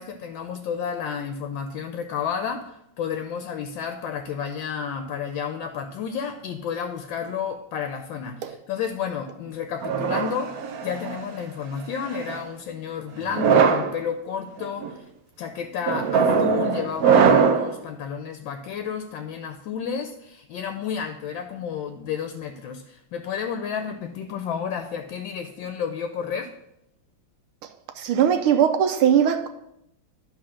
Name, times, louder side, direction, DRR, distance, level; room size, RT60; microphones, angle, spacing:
voice 1, 0.0-10.5 10.8-15.1 15.4-26.5, left 7 dB, 75° left, 1.3 m, -31 dB
sound 1, 9.8-11.2 12.0-12.4 13.2-13.9 14.6-14.9 15.9-17.7, right 6 dB, 70° right, 0.9 m, -21 dB
voice 2, 28.0-29.5, right 9 dB, 85° right, 1.5 m, -20 dB
10.5 x 3.6 x 6.2 m
omnidirectional pair, 2.3 m